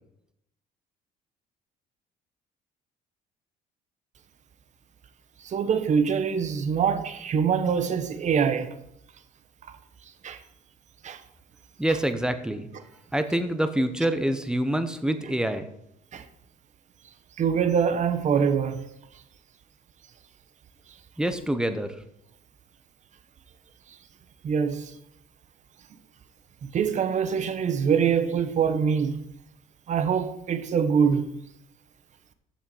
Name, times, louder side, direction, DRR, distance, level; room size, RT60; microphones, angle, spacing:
voice 1, 5.4-8.7 10.2-10.4 11.0-11.2 16.1-16.2 17.4-18.8 24.4-24.9 26.7-29.2 29.9-31.2, right 7 dB, 45° right, 1.0 m, -24 dB
voice 2, 11.8-12.7 13.1-15.7 21.2-21.9, right 1 dB, 5° right, 0.9 m, -26 dB
7.1 x 6.0 x 6.9 m
cardioid pair, 110°, 17 cm